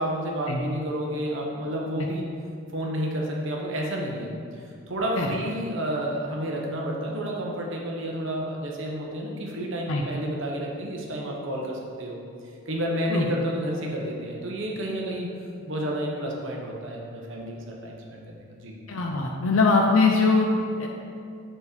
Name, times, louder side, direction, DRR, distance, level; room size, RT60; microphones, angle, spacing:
voice 1, 0.0-2.3 2.7-4.3 4.9-12.2 12.7-15.3 15.7-18.8, right 1 dB, 60° right, -1 dB, 1.1 m, -30 dB
voice 2, 18.9-20.9, left 3 dB, 70° left, 0 dB, 0.6 m, -22 dB
7.0 x 4.4 x 5.1 m, 2.4 s
head